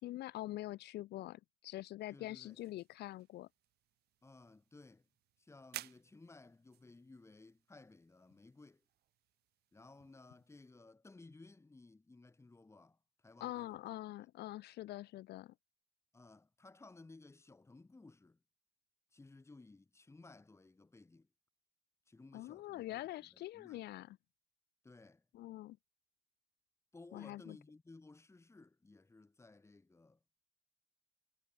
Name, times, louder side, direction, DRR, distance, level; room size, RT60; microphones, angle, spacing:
voice 1, 0.0-3.5 13.4-15.5 22.3-24.2 25.3-25.8 27.1-27.6, left 15 dB, 75° left, 3.1 m, -45 dB
voice 2, 2.1-2.6 4.2-5.1 5.4-8.8 9.7-14.2 16.1-18.4 19.1-21.3 22.1-23.9 24.8-25.3 26.9-30.2, left 3 dB, 15° left, 5.7 m, -58 dB
sound 1, 2.2-10.7, right 15 dB, 70° right, 2.3 m, -57 dB
cardioid pair, 110°, 17 cm